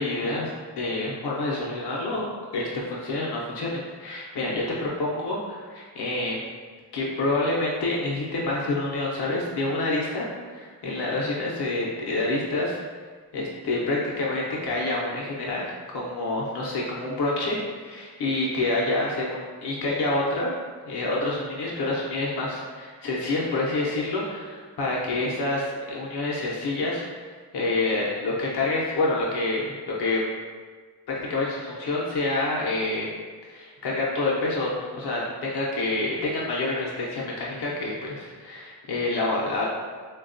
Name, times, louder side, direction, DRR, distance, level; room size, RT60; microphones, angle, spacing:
voice 1, 0.0-2.3 2.5-6.4 6.9-12.8 13.3-20.5 20.8-30.2 31.3-33.1 33.5-39.7, left 2 dB, 75° left, -4 dB, 0.6 m, -27 dB
3.4 x 2.2 x 2.5 m, 1.5 s
wide cardioid pair, 130°, 40 cm